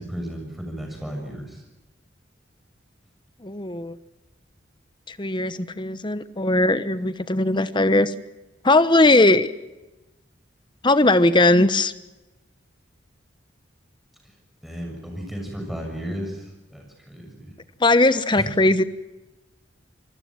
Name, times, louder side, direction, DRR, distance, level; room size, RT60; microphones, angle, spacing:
voice 1, 0.0-1.6 14.6-16.5 16.7-17.5 18.4-18.5, equal, ahead, 2 dB, 6.9 m, -34 dB
voice 2, 3.4-4.0 5.1-8.1 8.6-9.5 10.8-11.9 17.8-18.8, left 2 dB, 25° left, 13 dB, 1.1 m, -19 dB
27.0 x 20.0 x 7.6 m, 1.1 s
head